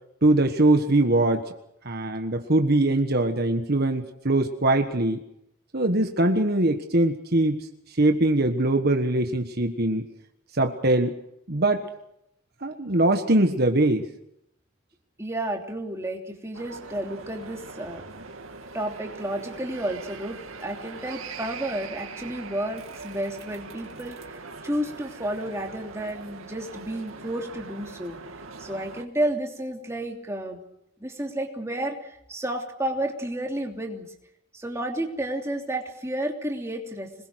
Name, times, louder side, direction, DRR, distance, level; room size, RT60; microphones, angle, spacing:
voice 1, 0.2-1.5 1.8-5.2 5.7-10.1 10.5-11.1 11.5-11.9 12.6-14.1, right 2 dB, 50° right, 6 dB, 1.4 m, -22 dB
voice 2, 15.2-18.0 18.7-24.4 24.6-28.2 28.6-30.6 31.0-34.1 34.5-37.1, right 1 dB, 15° right, 1 dB, 3.0 m, -31 dB
sound 1, 16.5-29.0, right 4 dB, 85° right, 2.4 m, -41 dB
26.5 x 21.0 x 6.4 m, 0.79 s
head